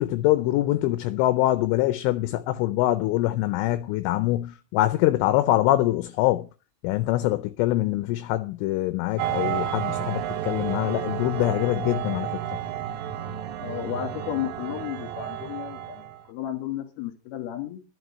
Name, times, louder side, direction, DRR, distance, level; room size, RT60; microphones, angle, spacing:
voice 1, 0.0-6.5 6.8-12.4, left 16 dB, 80° left, 3.0 m, -24 dB
sound 1, 9.2-16.2, right 10 dB, 80° right, 3.4 m, -31 dB
voice 2, 13.6-17.8, left 12 dB, 60° left, 3.5 m, -33 dB
11.0 x 7.4 x 6.1 m
omnidirectional pair, 5.9 m